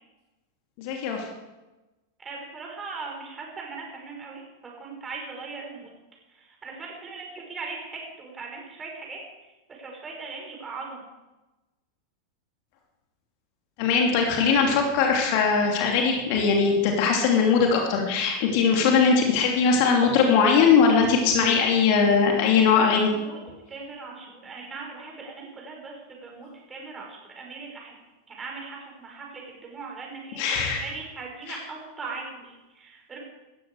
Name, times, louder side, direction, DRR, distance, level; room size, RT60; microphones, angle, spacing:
voice 1, 0.8-1.2 13.8-23.1 30.4-30.8 31.5-31.6, left 5 dB, 45° left, 1 dB, 3.0 m, -20 dB
voice 2, 2.2-5.9 6.4-9.2 9.7-11.0 22.8-27.9 28.3-33.2, right 4 dB, 20° right, -1 dB, 6.0 m, -39 dB
17.5 x 14.5 x 4.9 m, 1.1 s
figure-of-eight pair, 90°, 0 cm